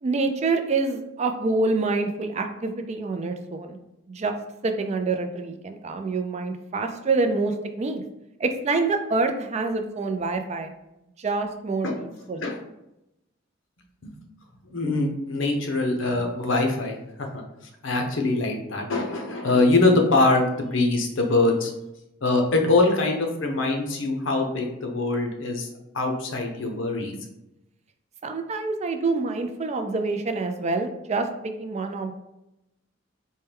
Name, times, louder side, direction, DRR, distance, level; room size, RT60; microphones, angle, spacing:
voice 1, 0.0-3.8 4.1-4.3 4.6-8.0 8.4-10.7 11.2-12.5 28.2-32.1, right 3 dB, 35° right, 6 dB, 0.3 m, -26 dB
voice 2, 14.7-17.4 17.8-21.7 22.2-25.7 25.9-27.1, left 2 dB, 70° left, 3 dB, 0.7 m, -23 dB
4.4 x 2.2 x 3.4 m, 0.89 s
head